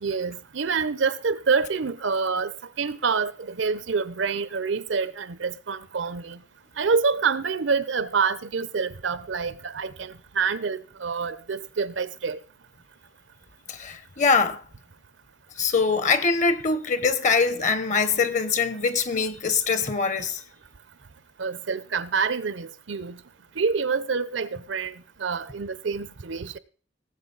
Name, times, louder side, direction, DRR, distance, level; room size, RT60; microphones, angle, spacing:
voice 1, 0.0-2.5 2.8-6.4 6.8-12.4 21.4-23.2 23.6-24.9 25.2-26.6, right 5 dB, 75° right, 0.7 m, -27 dB
voice 2, 13.7-14.6 15.6-20.4, left 4 dB, 40° left, 0.9 m, -23 dB
18.5 x 7.8 x 4.0 m
head